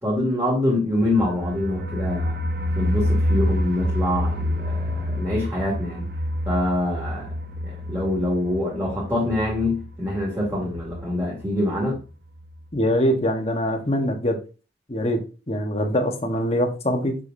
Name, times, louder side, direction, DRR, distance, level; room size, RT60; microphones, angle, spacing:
voice 1, 0.0-2.4 2.8-6.1 6.5-7.3 7.6-12.0, left 1 dB, 15° right, -5 dB, 2.4 m, -25 dB
sound 1, 1.0-11.7 12.0-12.1 12.4-12.5, equal, 55° right, 0.7 m, -28 dB
voice 2, 12.7-14.4 14.9-17.2, equal, 35° left, 4 dB, 1.2 m, -23 dB
6.9 x 6.6 x 2.7 m, 0.32 s
head